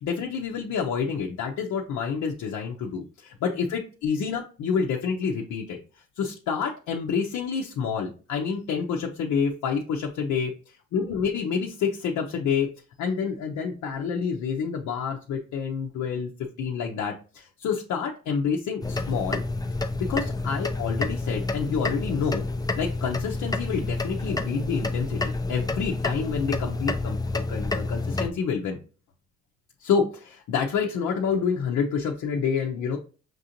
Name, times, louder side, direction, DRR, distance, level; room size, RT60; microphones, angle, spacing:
voice 1, 0.0-5.8 6.2-12.7 13.0-16.3 16.6-19.4 20.0-22.4 22.8-28.8 29.8-33.0, left 6 dB, 70° left, 1 dB, 0.7 m, -28 dB
sound 1, 18.8-28.3, left 2 dB, 15° left, 0.4 m, -29 dB
6.0 x 2.5 x 2.8 m, 0.37 s
cardioid pair, 90°, 30 cm